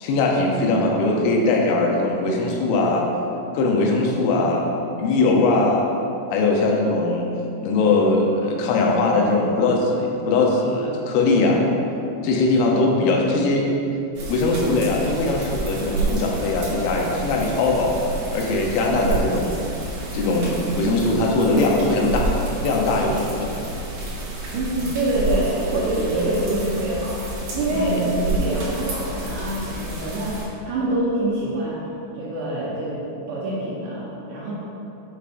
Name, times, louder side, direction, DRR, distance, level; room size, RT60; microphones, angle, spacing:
voice 1, 0.0-3.0 3.5-4.6 5.0-5.8 6.3-7.3 7.6-11.7 12.2-13.7 14.3-19.6 20.1-22.3 22.6-23.5 24.8-24.9 26.0-26.3 27.7-28.1, left 2 dB, 85° left, 0 dB, 3.1 m, -20 dB
sound 1, 14.1-30.4, right 2 dB, 60° right, 2.3 m, -30 dB
voice 2, 24.5-27.2 27.5-31.8 32.1-34.5, right 1 dB, 75° right, -6 dB, 2.6 m, -25 dB
7.8 x 6.5 x 2.6 m, 2.8 s
omnidirectional pair, 5.6 m